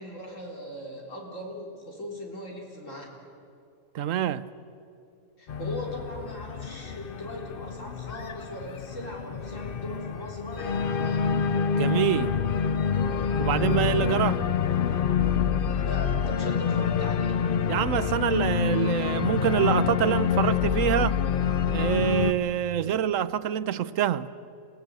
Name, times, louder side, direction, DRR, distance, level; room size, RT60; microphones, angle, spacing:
voice 1, 0.0-3.1 5.4-11.2 15.7-17.4, equal, 80° left, 4.1 m, -39 dB
voice 2, 3.9-4.5 11.7-12.4 13.4-14.4 17.7-21.2 21.7-24.3, right 10 dB, 85° right, 1.1 m, -26 dB
Organ, 5.5-22.3, left 7 dB, 50° left, 0.8 m, -27 dB
27.0 x 18.0 x 8.0 m
omnidirectional pair, 1.3 m